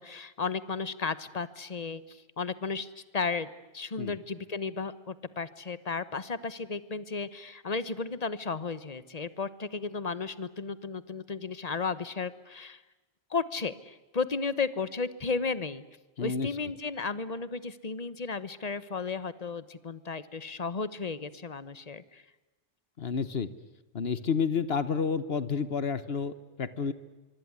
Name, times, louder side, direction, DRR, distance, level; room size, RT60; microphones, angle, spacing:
voice 1, 0.0-12.8 13.3-15.8 16.2-22.2, left 4 dB, 35° left, 15 dB, 1.2 m, -34 dB
voice 2, 16.2-16.5 23.0-23.5 23.9-26.9, left 6 dB, 65° left, 14 dB, 1.4 m, -30 dB
25.0 x 24.5 x 9.7 m, 1.1 s
omnidirectional pair, 1.1 m